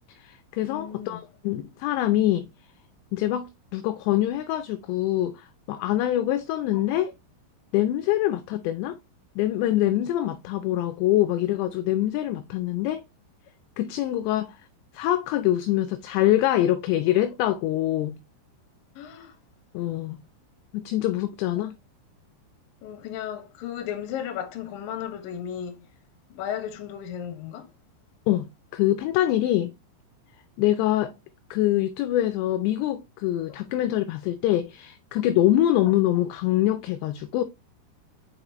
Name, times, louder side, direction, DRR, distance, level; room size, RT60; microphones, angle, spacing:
voice 1, 0.1-2.5 3.1-3.5 3.7-7.1 7.7-9.0 9.4-13.0 13.8-14.6 14.9-18.2 19.7-20.2 20.7-21.7 28.3-29.7 30.6-31.1 31.5-37.4, left 13 dB, 85° left, 2.5 m, -24 dB
voice 2, 0.6-1.3 6.7-7.0 19.0-19.4 22.8-25.8 26.3-27.7, left 9 dB, 65° left, 2.4 m, -35 dB
6.3 x 5.2 x 3.0 m
omnidirectional pair, 5.4 m